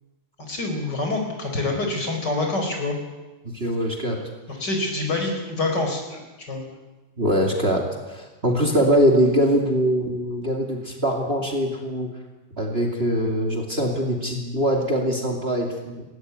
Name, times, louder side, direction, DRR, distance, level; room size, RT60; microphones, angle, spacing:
voice 1, 0.5-3.0 4.5-6.2 6.5-6.6, left 2 dB, 50° left, 3 dB, 5.3 m, -26 dB
voice 2, 3.4-4.2 7.2-12.1 12.6-16.0, equal, 30° right, 3 dB, 2.7 m, -22 dB
20.0 x 17.5 x 9.5 m, 1.1 s
omnidirectional pair, 2.4 m